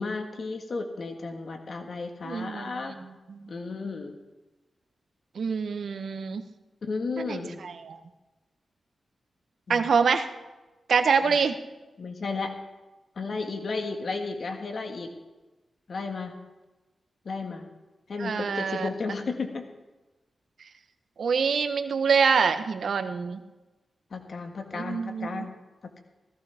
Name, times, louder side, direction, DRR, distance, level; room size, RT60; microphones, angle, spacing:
voice 1, 0.0-2.9 3.5-4.2 6.8-7.6 9.7-9.9 11.2-11.4 12.0-12.5 13.1-15.1 15.9-16.3 17.2-17.7 18.1-19.6 24.1-25.5, left 4 dB, 60° left, 4 dB, 1.6 m, -33 dB
voice 2, 2.2-2.8 3.3-3.5 5.4-6.4 7.2-8.0 9.7-10.3 10.9-11.6 18.2-18.9 21.2-23.4 24.7-25.5, right 5 dB, 75° right, 8 dB, 1.0 m, -25 dB
16.5 x 14.5 x 3.5 m, 1.1 s
cardioid pair, 80°, 0 cm